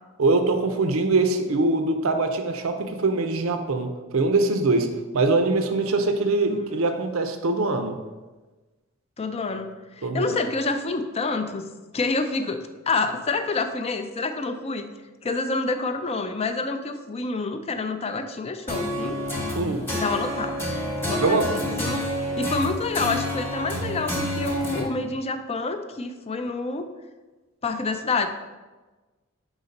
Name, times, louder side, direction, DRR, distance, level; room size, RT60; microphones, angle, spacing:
voice 1, 0.2-4.9 5.1-8.0 10.0-10.4 19.5-19.8 21.2-21.5, right 3 dB, 75° right, 6 dB, 0.6 m, -23 dB
voice 2, 9.2-9.7 10.0-11.6 11.9-14.9 15.2-19.2 19.9-20.6 21.0-22.1 22.4-26.9 27.6-28.3, left 3 dB, 30° left, 8 dB, 0.4 m, -28 dB
sound 1, 18.7-24.8, equal, 10° left, 0.9 m, -29 dB
4.9 x 4.0 x 5.2 m, 1.2 s
head